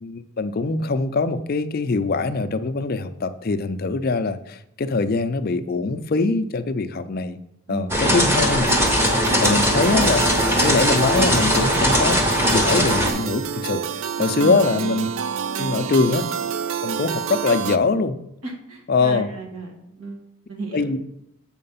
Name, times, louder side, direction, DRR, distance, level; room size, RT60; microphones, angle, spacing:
voice 1, 0.0-7.4 7.7-8.7 9.4-10.3 10.6-12.2 12.5-13.8 14.2-15.1 15.6-16.3 16.8-18.2 18.9-19.3 20.7-21.0, left 3 dB, 45° left, 11 dB, 0.4 m, -22 dB
voice 2, 7.7-8.2 14.2-14.6 18.4-20.9, right 3 dB, 85° right, 1 dB, 1.9 m, -34 dB
sound 1, 7.9-13.1, equal, 10° right, 0.9 m, -19 dB
sound 2, 8.6-17.8, right 7 dB, 60° right, 0.4 m, -29 dB
7.6 x 4.4 x 5.6 m, 0.80 s
head